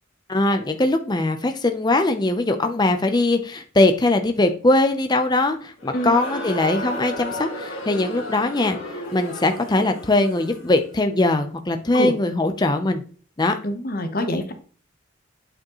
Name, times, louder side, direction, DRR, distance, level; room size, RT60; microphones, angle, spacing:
voice 1, 0.3-8.8 9.1-13.0 13.4-13.6, left 2 dB, 20° left, 6 dB, 0.6 m, -21 dB
Crowd, 5.8-10.8, left 1 dB, 65° left, 2.4 m, -33 dB
voice 2, 13.6-14.5, equal, 45° left, 7 dB, 0.9 m, -25 dB
8.6 x 5.1 x 3.0 m, 0.42 s
head